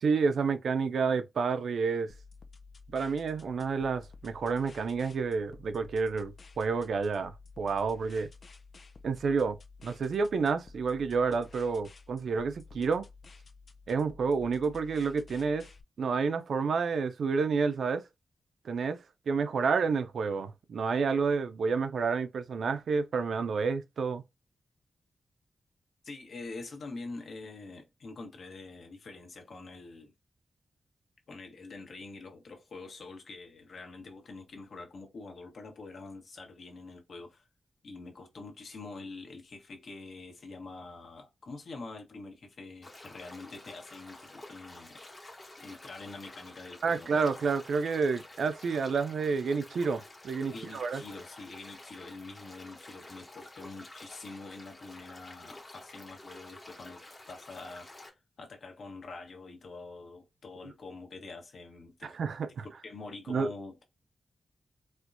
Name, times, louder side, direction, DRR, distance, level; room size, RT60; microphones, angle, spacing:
voice 1, 0.0-2.1 2.9-8.3 9.0-9.6 9.8-13.1 13.9-15.7 16.0-18.0 18.6-24.2 46.8-51.0 62.0-62.7 63.3-63.5, right 5 dB, 75° right, 0.4 m, -29 dB
sound 1, 2.1-15.8, left 4 dB, 45° left, 0.4 m, -52 dB
voice 2, 26.0-30.1 31.3-37.5 37.8-45.0 45.6-47.1 50.5-62.2 62.8-63.8, left 3 dB, 65° left, 1.1 m, -45 dB
sound 2, 42.8-58.1, left 2 dB, 20° left, 1.0 m, -50 dB
4.3 x 2.2 x 2.5 m
wide cardioid pair, 170°, 0 cm